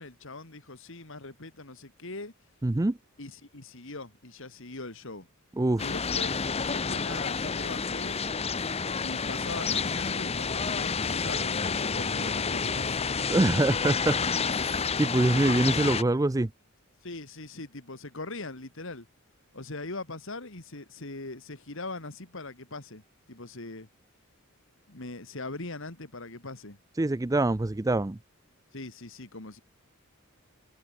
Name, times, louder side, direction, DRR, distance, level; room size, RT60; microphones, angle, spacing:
voice 1, 0.0-2.3 3.2-5.3 5.8-8.2 9.0-13.1 17.0-19.1 19.5-23.0 23.3-23.9 24.9-26.8 28.7-29.6, left 2 dB, 65° left, 2.5 m, -41 dB
voice 2, 2.6-3.0 5.6-5.9 13.3-14.2 14.4-16.5 26.9-28.2, right 2 dB, 15° right, 0.5 m, -25 dB
sound 1, 5.8-16.0, left 5 dB, 30° left, 0.8 m, -29 dB
head